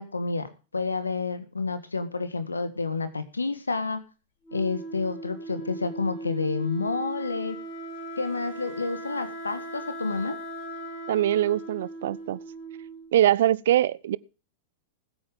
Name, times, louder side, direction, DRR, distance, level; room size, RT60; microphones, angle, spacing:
voice 1, 0.0-4.0 4.5-7.6 8.2-10.4, left 4 dB, 90° left, 1.5 m, -29 dB
Wind instrument woodwind instrument, 4.4-13.2, right 2 dB, 55° left, 6.3 m, -38 dB
voice 2, 11.1-12.4 13.1-14.2, right 12 dB, 65° right, 0.6 m, -23 dB
20.5 x 8.6 x 3.6 m
figure-of-eight pair, 100°, 0 cm